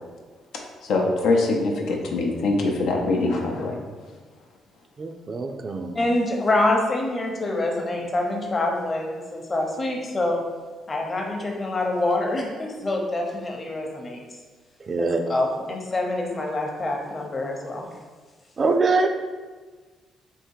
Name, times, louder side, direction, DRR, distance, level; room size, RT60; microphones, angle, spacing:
voice 1, 0.8-3.8, left 3 dB, 80° left, 0 dB, 0.6 m, -23 dB
voice 2, 5.0-6.1 14.8-15.2 18.6-19.1, right 3 dB, 40° right, 5 dB, 0.4 m, -24 dB
voice 3, 5.9-10.4 10.9-14.2 15.0-17.9, left 2 dB, 30° left, 1 dB, 0.8 m, -26 dB
3.6 x 2.6 x 4.6 m, 1.4 s
cardioid pair, 90°, 0 cm